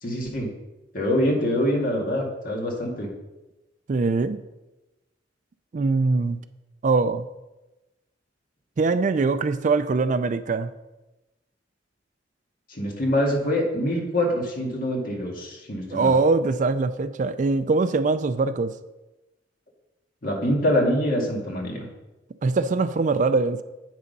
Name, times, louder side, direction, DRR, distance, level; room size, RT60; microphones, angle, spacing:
voice 1, 0.0-0.5 0.9-3.1 12.7-16.1 20.2-21.9, left 1 dB, 50° left, -1 dB, 2.0 m, -25 dB
voice 2, 3.9-4.4 5.7-6.4 6.8-7.3 8.8-10.7 15.9-18.7 22.4-23.6, right 3 dB, 40° right, 12 dB, 0.4 m, -22 dB
8.4 x 6.3 x 5.3 m, 1.0 s
head